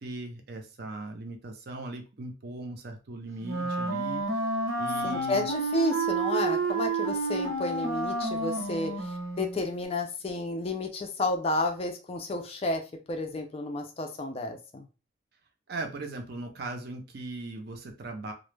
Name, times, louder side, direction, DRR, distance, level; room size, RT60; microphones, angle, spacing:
voice 1, 0.0-4.2 4.8-5.5 15.7-18.3, right 2 dB, 50° right, 4 dB, 0.5 m, -39 dB
Wind instrument woodwind instrument, 3.4-9.6, right 3 dB, 75° right, 0.8 m, -30 dB
voice 2, 5.0-14.9, left 2 dB, 30° left, 4 dB, 0.3 m, -31 dB
2.1 x 2.0 x 3.1 m, 0.32 s
head